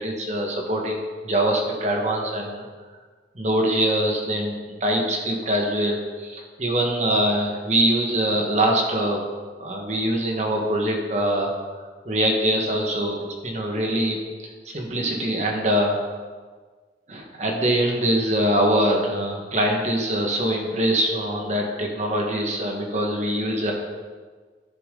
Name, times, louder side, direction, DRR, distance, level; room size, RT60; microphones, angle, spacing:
voice 1, 0.0-2.6 3.3-4.5 4.8-9.2 9.6-11.5 12.0-13.2 13.4-14.2 14.6-16.0 17.1-23.7, right 1 dB, 40° right, 1 dB, 1.4 m, -23 dB
12.0 x 7.0 x 3.8 m, 1.5 s
head